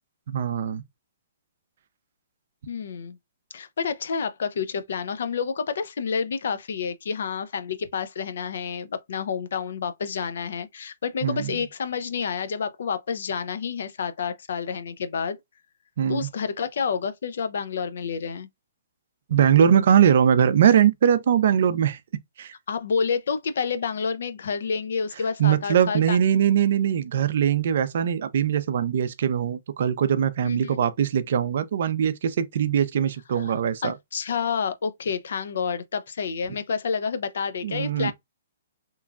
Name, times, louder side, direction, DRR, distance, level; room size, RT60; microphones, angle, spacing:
voice 1, 0.3-0.8 11.2-11.6 16.0-16.3 19.3-22.0 22.4-22.5 25.4-34.0 37.6-38.1, right 8 dB, 60° right, 0.4 m, -21 dB
voice 2, 2.7-3.2 3.5-15.4 16.1-18.5 22.7-26.3 30.4-30.8 33.3-33.5 33.8-38.1, left 6 dB, 70° left, 0.4 m, -29 dB
2.9 x 2.3 x 2.3 m
hypercardioid pair, 135°, 0 cm